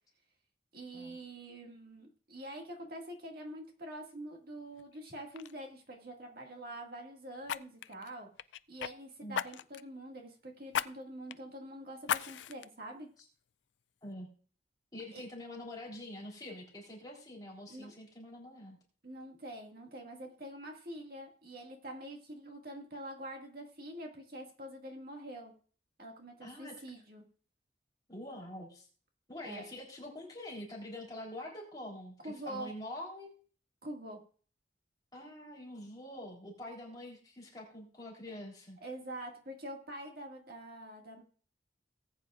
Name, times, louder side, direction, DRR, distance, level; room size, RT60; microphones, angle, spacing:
voice 1, 0.7-8.3 8.7-13.1 15.1-15.2 17.7-17.9 19.0-25.5 26.0-27.2 29.4-29.7 32.2-32.7 33.8-34.2 38.3-38.4 38.8-41.2, right 1 dB, 55° right, 1 dB, 2.0 m, -45 dB
Fire, 4.8-5.0 5.3-5.5 7.4-8.9 9.3-9.9 10.7-10.9 11.3-11.4 12.0-12.7 13.2-13.3, left 9 dB, 90° left, 0.4 m, -36 dB
voice 2, 14.9-18.8 26.4-26.8 28.1-28.9 29.3-33.3 35.1-38.8, left 1 dB, 20° left, -2 dB, 3.6 m, -45 dB
19.0 x 8.6 x 2.5 m, 0.41 s
head